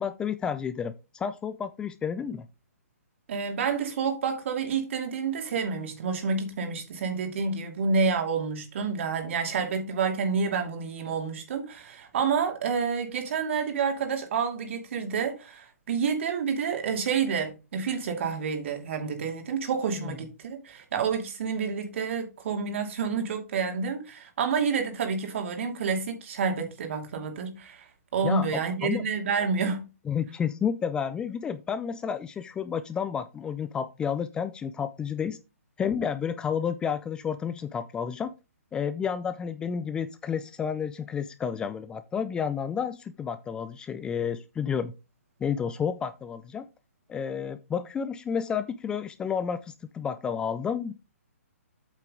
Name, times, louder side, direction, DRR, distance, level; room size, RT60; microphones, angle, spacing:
voice 1, 0.0-2.5 20.0-20.1 28.2-29.1 30.1-35.4 35.8-38.3 38.7-44.9 45.4-46.7 47.1-50.9, left 7 dB, 10° left, 0.4 m, -31 dB
voice 2, 3.3-27.8 28.1-29.8, right 5 dB, 55° right, 2.7 m, -29 dB
8.4 x 6.5 x 3.7 m
hypercardioid pair, 140°, 8 cm